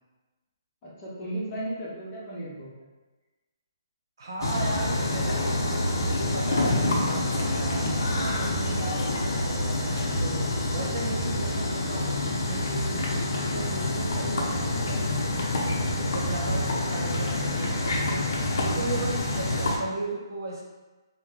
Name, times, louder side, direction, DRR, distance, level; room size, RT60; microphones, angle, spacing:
voice 1, 0.8-2.7 16.4-16.9, right 1 dB, 20° left, -8 dB, 0.9 m, -35 dB
voice 2, 4.2-7.9 8.2-10.4 10.7-15.4 16.0-18.2 18.6-20.6, right 2 dB, 65° right, -3 dB, 0.9 m, -37 dB
sound 1, 4.4-19.8, left 1 dB, 60° left, 0.6 m, -27 dB
3.0 x 2.1 x 3.7 m, 1.2 s
hypercardioid pair, 160°, 2 cm